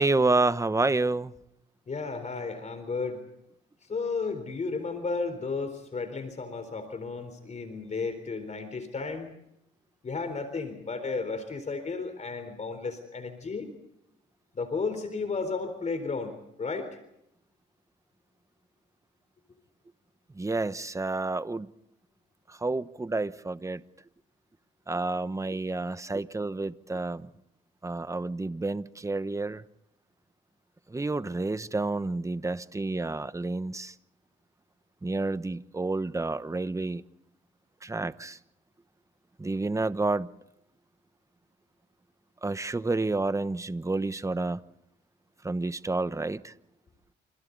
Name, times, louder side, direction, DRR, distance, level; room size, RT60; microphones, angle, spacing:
voice 1, 0.0-1.3 20.3-21.7 22.5-23.8 24.9-27.3 27.8-29.6 30.9-33.9 35.0-37.0 37.8-38.4 39.4-40.3 42.4-44.6 45.4-46.5, right 3 dB, 15° right, 14 dB, 1.1 m, -29 dB
voice 2, 1.9-3.3 3.9-9.3 10.0-13.7 14.6-16.9, left 4 dB, 35° left, 9 dB, 4.0 m, -33 dB
29.5 x 27.0 x 4.1 m, 0.79 s
cardioid pair, 90°, 20 cm